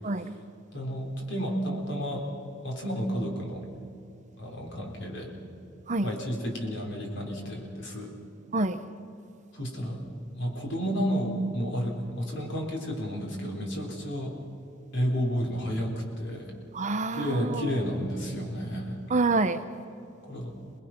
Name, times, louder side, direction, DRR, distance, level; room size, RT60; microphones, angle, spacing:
voice 1, 0.0-0.4 5.9-6.1 8.5-8.8 16.7-17.7 19.1-19.6, right 3 dB, 40° right, 0.8 m, -27 dB
voice 2, 0.7-2.3 2.6-3.7 4.4-5.3 6.0-8.1 9.5-10.0 10.3-14.4 14.9-16.5 17.1-19.0 20.3-20.6, equal, 65° left, 3.9 m, -31 dB
28.0 x 20.0 x 5.9 m
head